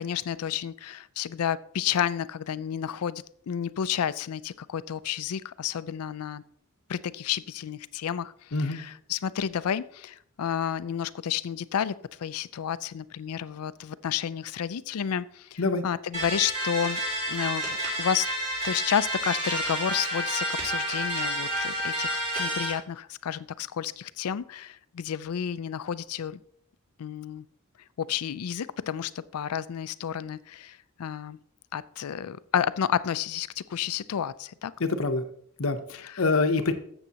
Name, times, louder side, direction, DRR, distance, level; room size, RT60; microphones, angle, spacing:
voice 1, 0.0-6.4 6.9-8.3 8.7-11.9 12.2-17.0 17.3-17.7 18.0-18.3 18.6-26.4 27.0-27.5 28.0-31.4 31.7-34.7, left 8 dB, 85° left, 17 dB, 0.4 m, -31 dB
voice 2, 8.5-8.8 15.6-15.8 34.8-35.2 35.6-36.7, left 3 dB, 65° left, 9 dB, 0.8 m, -25 dB
sound 1, 16.1-22.7, equal, 30° right, 3.9 m, -30 dB
12.5 x 7.9 x 2.9 m, 0.65 s
head